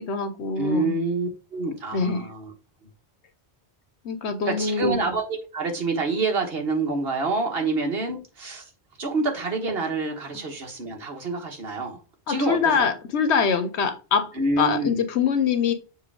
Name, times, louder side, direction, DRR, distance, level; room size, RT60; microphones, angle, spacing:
voice 1, 0.0-0.9 1.9-2.3 4.0-5.0 12.3-14.3 14.6-15.7, left 6 dB, 80° left, 1.2 m, -24 dB
voice 2, 0.6-2.5 4.4-8.6 9.0-12.0 12.3-12.9 14.3-15.0, right 3 dB, 60° right, 1.6 m, -27 dB
6.9 x 3.2 x 4.7 m
omnidirectional pair, 1.1 m